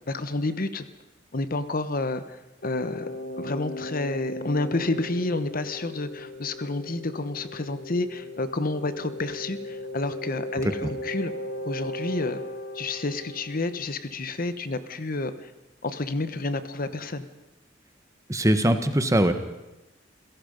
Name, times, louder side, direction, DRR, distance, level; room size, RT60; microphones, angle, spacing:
voice 1, 0.1-0.9 1.3-3.1 3.4-11.3 11.6-12.4 12.7-15.5 15.8-17.2, left 2 dB, 50° left, 11 dB, 1.1 m, -30 dB
sound 1, 2.6-14.2, left 1 dB, 70° left, 1.9 m, -37 dB
voice 2, 18.3-19.3, right 1 dB, 15° right, 8 dB, 1.3 m, -21 dB
29.0 x 17.0 x 5.3 m, 1.0 s
head